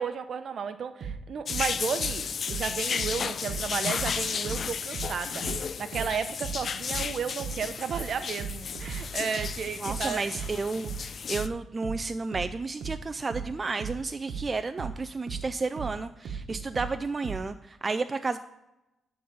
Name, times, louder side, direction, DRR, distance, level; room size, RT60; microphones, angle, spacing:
voice 1, 0.0-5.5 5.8-10.3, right 6 dB, 55° right, 10 dB, 0.7 m, -33 dB
sound 1, 1.0-4.2 4.4-17.5, right 6 dB, 70° right, 1.1 m, -37 dB
sound 2, 1.5-11.5, left 6 dB, 50° left, 0.4 m, -33 dB
voice 2, 9.8-18.4, right 3 dB, 30° right, 9 dB, 0.3 m, -32 dB
11.5 x 3.9 x 6.9 m, 0.93 s
cardioid pair, 105°, 0 cm